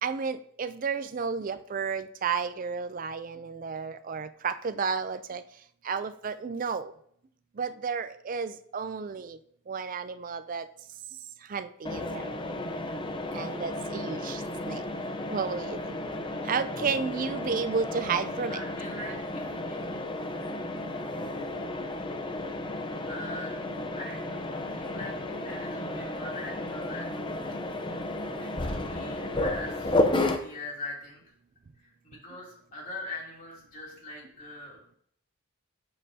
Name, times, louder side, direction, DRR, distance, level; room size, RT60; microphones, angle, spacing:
voice 1, 0.0-5.4 5.8-6.9 7.6-9.4 9.7-10.7 11.5-12.3 13.3-14.8 15.3-16.0 16.4-18.6, right 5 dB, 40° right, 11 dB, 0.4 m, -32 dB
Mechanisms, 11.8-30.4, left 1 dB, 20° left, 0.7 m, -33 dB
voice 2, 18.5-19.8 23.1-27.7 28.4-31.2 31.8-34.8, left 2 dB, 40° left, -3 dB, 3.1 m, -42 dB
11.5 x 7.4 x 2.8 m, 0.67 s
head